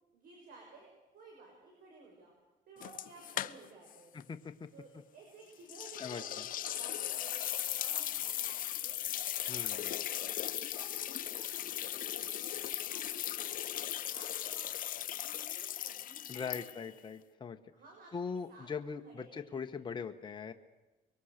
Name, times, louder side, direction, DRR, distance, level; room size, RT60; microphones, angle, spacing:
voice 1, 0.1-2.3 2.7-4.4 4.7-10.1 10.4-13.7 14.1-14.7 15.1-16.7 17.7-18.7 19.0-19.7, right 3 dB, 60° right, 0 dB, 6.0 m, -56 dB
sound 1, 2.8-3.9 4.2-4.3 5.7-17.0, left 12 dB, 55° left, 0.8 m, -38 dB
voice 2, 4.3-4.7 6.0-6.2 9.5-9.9 16.3-17.6 18.1-20.5, left 5 dB, 25° left, 6 dB, 1.3 m, -41 dB
24.5 x 23.0 x 6.7 m, 1.1 s
cardioid pair, 110°, 17 cm